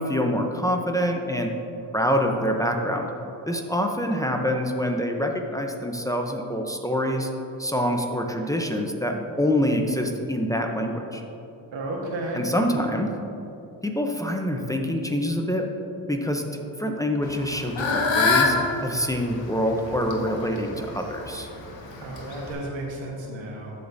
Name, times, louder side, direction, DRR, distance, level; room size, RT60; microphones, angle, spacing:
voice 1, 0.0-1.5 1.9-3.1 3.5-7.3 7.6-11.2 12.3-13.1 13.8-15.7 16.1-16.4 16.8-21.5, equal, 5° left, 2 dB, 0.7 m, -26 dB
voice 2, 11.7-12.4 22.0-23.7, right 1 dB, 80° right, -1 dB, 1.5 m, -32 dB
Fowl / Bird, 17.2-22.5, left 3 dB, 75° left, 1.2 m, -26 dB
13.5 x 5.0 x 2.7 m, 2.9 s
cardioid pair, 60°, 45 cm